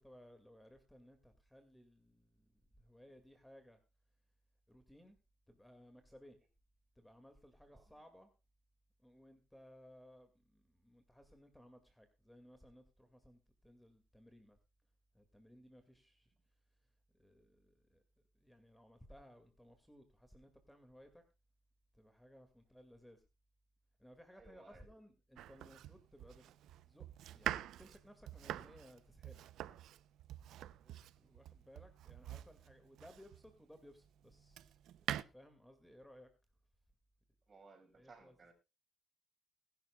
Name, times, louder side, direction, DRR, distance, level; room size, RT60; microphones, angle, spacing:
voice 1, 0.0-3.8 4.7-5.2 5.5-6.4 7.0-8.3 9.0-14.6 15.1-16.3 17.1-18.0 18.3-21.2 21.9-23.2 24.0-26.5 26.8-29.4 31.2-36.3 38.0-38.5, equal, 5° left, 2.1 m, -61 dB
voice 2, 24.3-24.9 30.8-31.0 37.5-38.5, right 3 dB, 35° right, 5.4 m, -61 dB
Domestic sounds home sounds, 25.4-33.5 34.1-35.2, right 12 dB, 80° right, 0.6 m, -45 dB
21.0 x 11.5 x 2.3 m
cardioid pair, 90°, 0 cm